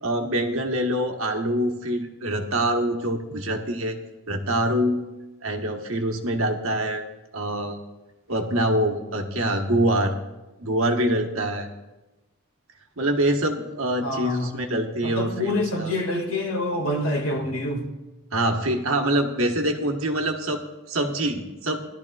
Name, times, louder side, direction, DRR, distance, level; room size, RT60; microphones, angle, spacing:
voice 1, 0.0-4.0 4.3-5.0 5.4-7.0 7.3-7.8 8.3-10.1 10.6-11.7 13.0-15.9 18.3-21.8, right 1 dB, 70° right, 3 dB, 1.3 m, -25 dB
voice 2, 14.0-14.6 15.0-17.9, left 1 dB, 75° left, 2 dB, 2.1 m, -26 dB
17.0 x 12.0 x 2.4 m, 1.1 s
head